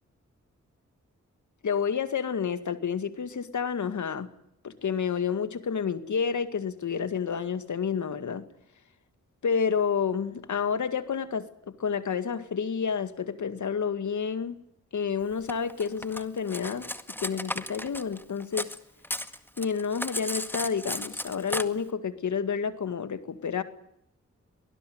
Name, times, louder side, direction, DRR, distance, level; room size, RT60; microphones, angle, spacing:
voice 1, 1.6-4.3 4.6-8.5 9.4-14.6 14.9-16.9 17.2-18.7 19.6-23.6, left 6 dB, 75° left, 11 dB, 2.1 m, -29 dB
Cutlery silverware, 15.5-18.8 19.0-21.6, left 1 dB, 5° left, 1.9 m, -35 dB
24.0 x 20.0 x 9.5 m, 0.77 s
cardioid pair, 55°, 29 cm